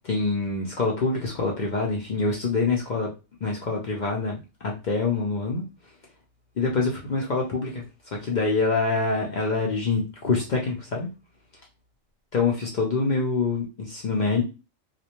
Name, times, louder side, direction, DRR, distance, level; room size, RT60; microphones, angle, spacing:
voice 1, 0.0-3.1 3.4-5.6 6.6-7.8 8.1-11.1 12.3-14.4, left 3 dB, 55° left, -1 dB, 0.5 m, -25 dB
2.4 x 2.1 x 2.8 m, 0.29 s
omnidirectional pair, 1.3 m